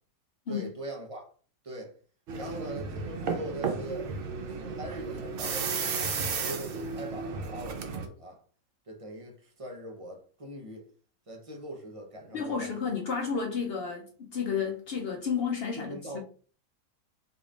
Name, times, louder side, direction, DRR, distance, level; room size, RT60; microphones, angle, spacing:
voice 1, 0.5-1.3 1.6-1.9 2.3-4.1 4.4-6.1 6.4-8.4 8.9-10.9 11.3-13.0 15.8-16.2, right 1 dB, 35° right, 0.5 m, -41 dB
sound 1, 2.3-8.1, right 5 dB, 85° right, 0.5 m, -33 dB
voice 2, 12.3-16.2, left 6 dB, 70° left, 0.5 m, -32 dB
3.9 x 3.5 x 2.4 m
omnidirectional pair, 1.8 m